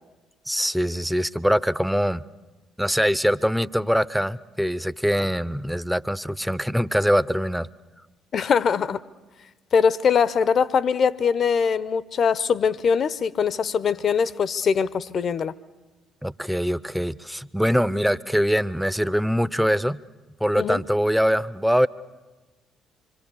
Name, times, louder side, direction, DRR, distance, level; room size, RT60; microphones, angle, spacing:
voice 1, 0.5-2.2 2.8-7.7 16.2-20.0 20.4-21.9, equal, ahead, 17 dB, 0.7 m, -23 dB
voice 2, 8.3-9.0 9.7-15.5 20.5-20.8, left 6 dB, 50° left, 18 dB, 0.8 m, -22 dB
26.0 x 24.5 x 7.1 m, 1.2 s
figure-of-eight pair, 45°, 0 cm